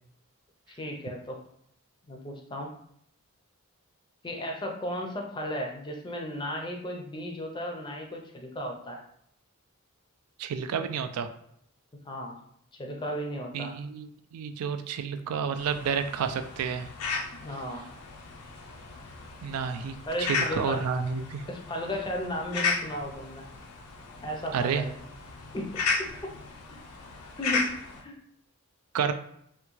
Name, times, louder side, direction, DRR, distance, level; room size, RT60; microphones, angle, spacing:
voice 1, 0.8-1.4 2.1-2.7 4.2-9.0 12.1-12.4 12.8-13.7 17.4-17.8 20.1-20.8 21.5-23.5 24.2-24.9 25.5-25.7 26.2-26.3 26.7-26.8 27.4-27.7 28.0-28.1, equal, 20° left, 1 dB, 0.4 m, -34 dB
voice 2, 10.4-11.3 13.5-16.9 19.4-21.5 24.5-24.9 28.9-29.1, right 6 dB, 85° right, 9 dB, 0.3 m, -30 dB
sound 1, 15.6-28.0, left 4 dB, 90° left, 0.5 m, -35 dB
3.5 x 2.2 x 3.0 m, 0.69 s
head